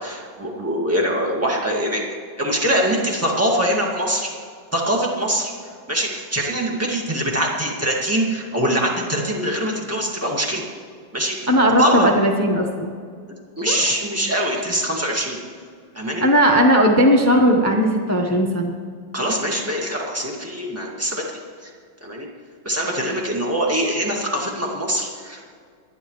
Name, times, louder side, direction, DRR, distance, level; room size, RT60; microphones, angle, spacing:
voice 1, 0.0-2.0 2.4-4.3 4.7-5.5 5.9-10.6 11.1-11.4 11.8-12.1 13.6-15.4 15.9-16.2 19.1-21.2 21.6-21.7 22.0-22.3 22.6-25.5, equal, 10° right, -2 dB, 1.8 m, -23 dB
voice 2, 11.5-12.9 13.7-13.8 16.2-18.8, equal, 15° left, 2 dB, 0.7 m, -17 dB
29.0 x 10.0 x 3.2 m, 2.1 s
omnidirectional pair, 2.1 m